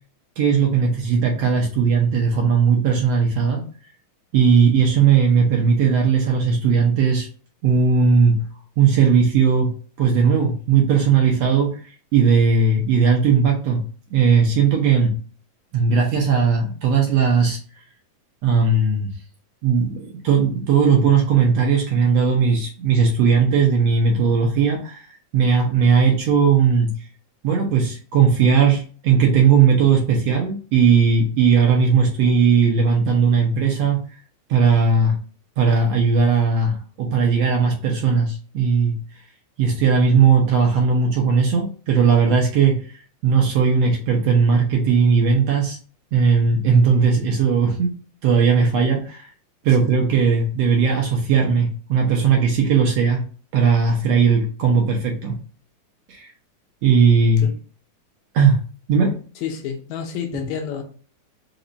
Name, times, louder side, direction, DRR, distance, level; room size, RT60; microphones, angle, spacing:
voice 1, 0.4-3.6 4.3-7.3 7.6-8.4 8.8-11.8 12.1-13.8 14.1-15.2 15.7-17.6 18.4-19.1 19.6-25.0 25.3-26.9 27.4-34.0 34.5-35.2 35.6-39.0 39.6-42.8 43.2-45.8 46.1-47.9 48.2-49.3 49.6-53.2 53.5-55.4 56.1-56.3 56.8-57.4 58.3-58.6 58.9-59.2, right 5 dB, 70° right, 0 dB, 1.6 m, -17 dB
voice 2, 59.4-60.8, left 8 dB, 75° left, 3 dB, 2.0 m, -29 dB
5.1 x 2.3 x 3.9 m, 0.40 s
omnidirectional pair, 3.5 m